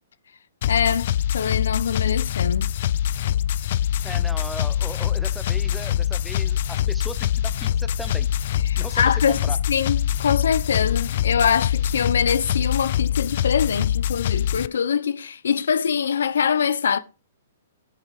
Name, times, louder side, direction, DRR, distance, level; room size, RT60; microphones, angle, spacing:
sound 1, 0.6-14.7, left 11 dB, 50° left, 0.5 m, -24 dB
voice 1, 0.7-2.7 8.7-9.4 9.7-17.0, left 7 dB, 80° left, 1.0 m, -23 dB
voice 2, 4.0-8.3 8.8-9.6, right 1 dB, ahead, 0.9 m, -37 dB
sound 2, 7.0-12.8, left 7 dB, 15° left, 3.4 m, -39 dB
10.5 x 7.1 x 5.0 m
hypercardioid pair, 160°, 0 cm